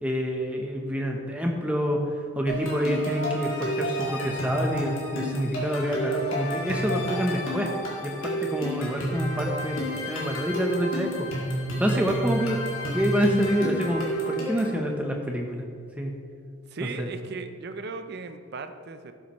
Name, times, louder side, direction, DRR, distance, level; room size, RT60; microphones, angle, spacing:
voice 1, 0.0-2.0 2.4-7.7 8.0-11.3 11.8-12.6 12.9-15.6 16.0-16.2 17.0-17.1, equal, 5° right, 1 dB, 0.8 m, -27 dB
sound 1, 2.5-14.8, equal, 65° left, 2.2 m, -30 dB
voice 2, 16.7-19.1, right 4 dB, 50° right, 9 dB, 0.5 m, -37 dB
12.0 x 7.2 x 3.1 m, 2.3 s
head